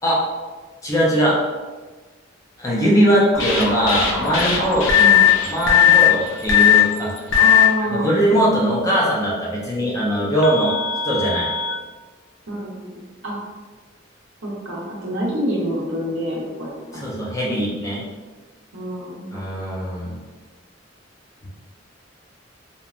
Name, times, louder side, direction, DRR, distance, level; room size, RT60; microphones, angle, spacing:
voice 1, 0.8-1.4 2.6-4.9 5.5-7.1 7.9-10.8 11.0-11.5 17.0-18.0 19.3-20.2, equal, 15° left, -6 dB, 0.5 m, -20 dB
sound 1, 3.3-7.7 8.9-9.0 10.4-11.7, left 9 dB, 75° left, 0.4 m, -17 dB
voice 2, 7.4-8.1 12.5-13.4 14.4-17.1 18.7-19.3, right 1 dB, 70° right, -4 dB, 0.7 m, -27 dB
3.0 x 2.2 x 2.4 m, 1.3 s
head